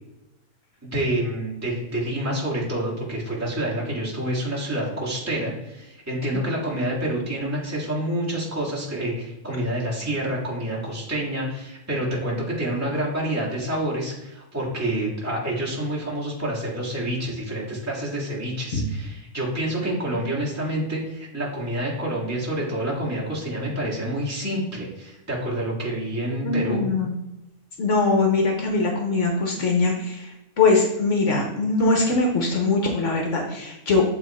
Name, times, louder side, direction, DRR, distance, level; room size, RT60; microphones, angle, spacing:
voice 1, 0.8-26.8, right 1 dB, 10° right, -6 dB, 1.9 m, -28 dB
voice 2, 26.4-27.1 27.8-34.0, left 3 dB, 60° left, 1 dB, 1.2 m, -22 dB
7.7 x 3.4 x 4.3 m, 0.92 s
omnidirectional pair, 1.5 m